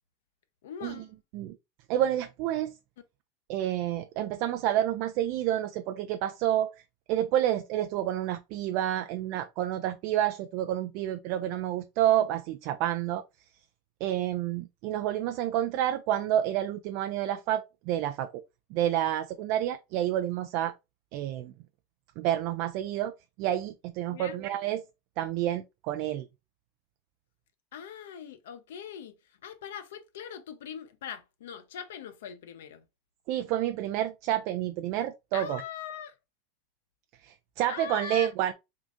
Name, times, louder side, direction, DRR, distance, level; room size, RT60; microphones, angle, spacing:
voice 1, 0.6-1.1 24.1-24.4 27.7-32.8 35.3-36.1 37.7-38.3, left 8 dB, 80° left, 0.6 m, -41 dB
voice 2, 1.9-2.7 3.5-6.7 7.1-13.2 14.0-18.3 18.7-20.7 21.1-21.5 22.2-23.1 23.4-24.8 25.2-26.3 33.3-35.6 37.2-38.5, right 12 dB, 55° right, 0.3 m, -29 dB
3.7 x 2.4 x 3.5 m
supercardioid pair, 120°, 0 cm